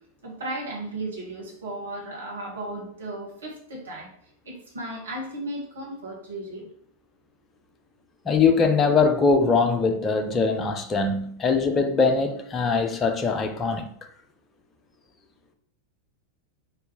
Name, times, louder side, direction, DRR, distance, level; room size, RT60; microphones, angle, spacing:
voice 1, 0.2-4.1 4.5-6.7, right 1 dB, 65° right, 2.2 m, -35 dB
voice 2, 8.3-13.9, left 4 dB, 20° left, 0.8 m, -22 dB
4.7 x 4.6 x 4.9 m
figure-of-eight pair, 90°, 0 cm